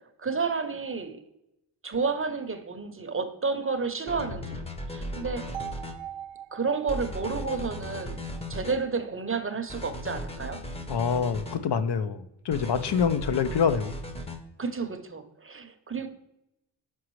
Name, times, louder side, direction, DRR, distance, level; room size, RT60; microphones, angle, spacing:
voice 1, 0.2-1.2 1.8-4.6 4.9-5.5 6.5-8.2 8.5-10.6 14.6-16.1, right 4 dB, 30° right, 0.7 m, -31 dB
sound 1, 4.1-6.0 6.9-8.8 9.7-11.6 12.5-14.4, left 1 dB, 15° left, 0.7 m, -37 dB
sound 2, 5.5-9.5, right 10 dB, 85° right, 0.5 m, -43 dB
voice 2, 10.9-13.9, left 6 dB, 60° left, 0.6 m, -26 dB
6.1 x 5.0 x 3.1 m
cardioid pair, 75°, 47 cm